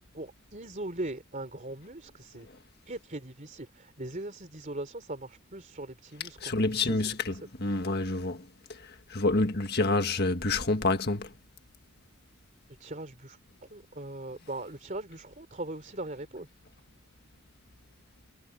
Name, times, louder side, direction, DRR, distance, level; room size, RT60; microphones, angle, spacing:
voice 1, 0.1-2.5 2.8-7.5 12.8-16.5, right 2 dB, 35° right, 3.2 m, -40 dB
voice 2, 6.4-7.3 7.6-8.4 9.1-11.3, left 2 dB, 45° left, 1.8 m, -27 dB
head